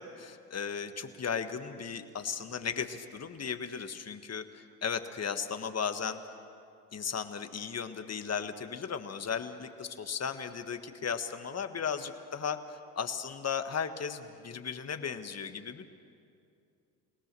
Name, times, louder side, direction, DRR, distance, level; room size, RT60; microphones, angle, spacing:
voice 1, 0.0-6.2 6.9-15.9, left 6 dB, 35° left, 9 dB, 1.6 m, -36 dB
29.0 x 18.5 x 6.9 m, 2.5 s
hypercardioid pair, 65°, 46 cm